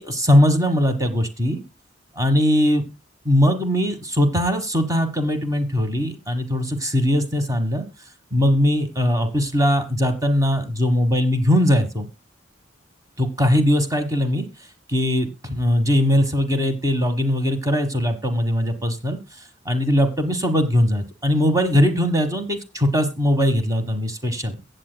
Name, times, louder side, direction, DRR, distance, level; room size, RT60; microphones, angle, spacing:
voice 1, 0.0-1.6 2.2-2.8 3.2-7.9 8.3-12.1 13.2-14.5 14.9-19.2 19.6-24.6, equal, 20° right, 7 dB, 1.3 m, -20 dB
22.0 x 7.8 x 2.2 m, 0.23 s
head